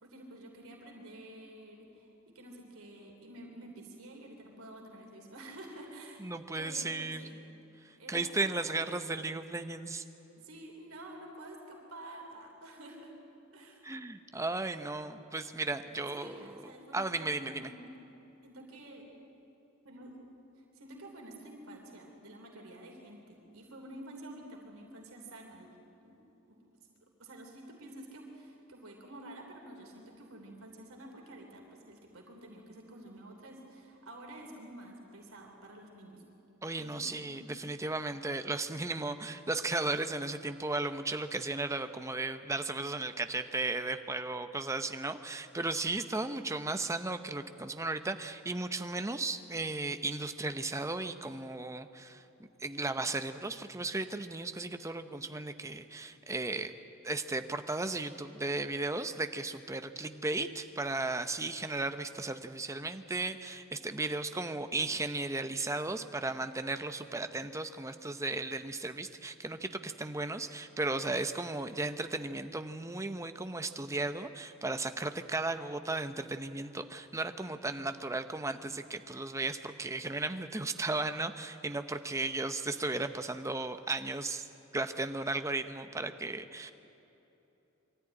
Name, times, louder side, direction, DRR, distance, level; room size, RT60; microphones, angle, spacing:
voice 1, 0.0-6.2 6.6-7.5 8.0-8.9 10.4-13.1 13.5-13.8 15.9-17.9 18.4-19.1 19.8-20.2 20.6-25.7 26.0-26.2 26.5-26.6 27.0-36.2 36.8-37.5, right 1 dB, 70° right, 1 dB, 3.3 m, -49 dB
voice 2, 6.2-7.2 8.1-10.0 13.8-17.7 36.6-52.2 52.6-56.7 57.0-84.5 84.7-86.7, right 2 dB, 15° right, 9 dB, 0.8 m, -35 dB
23.0 x 13.5 x 9.9 m, 3.0 s
head